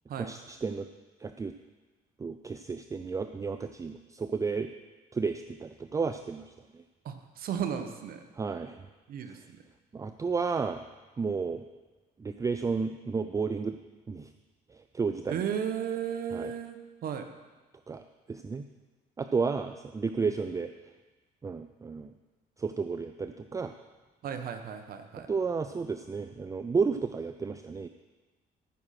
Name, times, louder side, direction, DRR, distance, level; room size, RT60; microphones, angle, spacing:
voice 1, 0.2-0.9 1.2-1.5 2.2-4.7 5.1-6.8 8.4-8.8 9.9-10.8 11.2-11.6 12.2-13.8 14.1-14.3 14.7-15.4 16.3-16.5 17.9-18.6 19.2-20.7 21.4-22.1 22.6-23.7 25.3-27.9, right 5 dB, 20° right, 8 dB, 0.4 m, -32 dB
voice 2, 7.0-8.2 9.1-9.4 15.3-17.2 20.2-20.3 24.2-25.3, right 8 dB, 60° right, 7 dB, 1.1 m, -34 dB
14.0 x 6.4 x 5.9 m, 1.2 s
cardioid pair, 110°, 17 cm